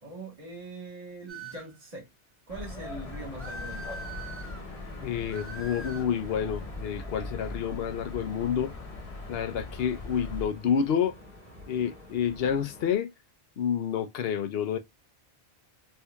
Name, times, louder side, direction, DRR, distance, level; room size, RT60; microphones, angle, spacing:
voice 1, 0.0-2.1 2.5-4.0, right 2 dB, 35° right, 1.6 m, -42 dB
sound 1, 1.3-1.8 3.4-4.6 5.3-6.1, right 2 dB, 15° right, 0.6 m, -42 dB
sound 2, 2.5-10.5, left 3 dB, 35° left, 0.8 m, -40 dB
sound 3, 3.0-13.0, equal, 60° right, 2.5 m, -48 dB
voice 2, 5.0-8.7 9.3-11.1 11.7-13.1 13.6-14.8, left 8 dB, 70° left, 0.8 m, -29 dB
4.5 x 2.6 x 2.2 m
omnidirectional pair, 1.1 m